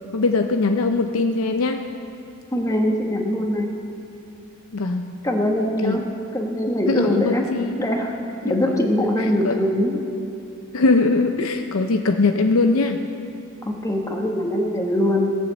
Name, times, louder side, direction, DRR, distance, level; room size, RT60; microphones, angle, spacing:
voice 1, 0.1-1.8 4.7-5.1 5.8-6.0 6.9-7.8 8.5-8.9 9.2-9.6 10.7-13.0, left 3 dB, 80° left, 6 dB, 0.6 m, -21 dB
voice 2, 2.5-3.7 5.2-6.0 6.3-7.4 7.8-8.1 8.4-10.0 13.6-15.4, left 1 dB, 15° left, 2 dB, 1.3 m, -22 dB
17.5 x 7.0 x 7.7 m, 2.7 s
head